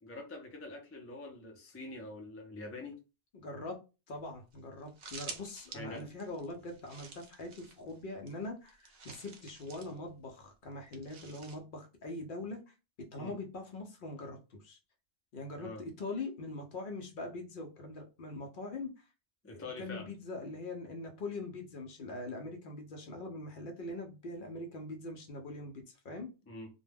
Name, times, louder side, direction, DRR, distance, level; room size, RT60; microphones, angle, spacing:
voice 1, 0.0-3.0 5.7-6.1 13.2-13.4 15.6-15.8 19.4-20.1 26.5-26.7, left 2 dB, 25° left, 0.3 m, -45 dB
voice 2, 3.3-3.8 4.1-12.7 13.1-14.8 15.3-19.1 19.5-26.3, left 2 dB, 60° left, 0.6 m, -42 dB
sound 1, 4.3-4.4 4.5-4.6 4.8-8.0 8.3-10.0 10.9-11.6, right 4 dB, 55° right, 0.6 m, -49 dB
2.2 x 2.1 x 3.3 m
omnidirectional pair, 1.1 m